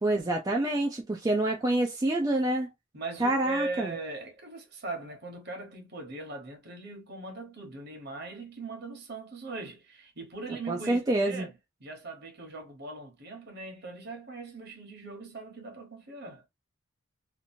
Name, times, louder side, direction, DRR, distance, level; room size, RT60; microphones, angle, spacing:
voice 1, 0.0-2.7 3.2-3.9 10.7-11.5, right 1 dB, 20° right, 0.4 m, -27 dB
voice 2, 2.9-11.5 11.8-16.5, right 3 dB, 55° right, 1.2 m, -40 dB
2.9 x 2.5 x 2.6 m
head